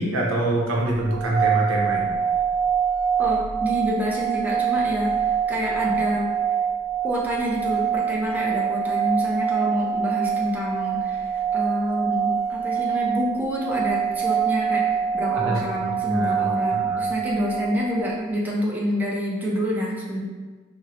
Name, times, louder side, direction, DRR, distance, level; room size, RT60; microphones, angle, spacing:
voice 1, 0.0-2.1 15.3-16.3 16.7-17.0, right 1 dB, 80° right, -3 dB, 0.7 m, -25 dB
sound 1, 1.0-18.2, right 7 dB, 40° left, 0.4 m, -25 dB
voice 2, 3.2-6.3 7.0-20.2, equal, 10° right, -4 dB, 0.5 m, -27 dB
4.1 x 2.1 x 2.5 m, 1.4 s
head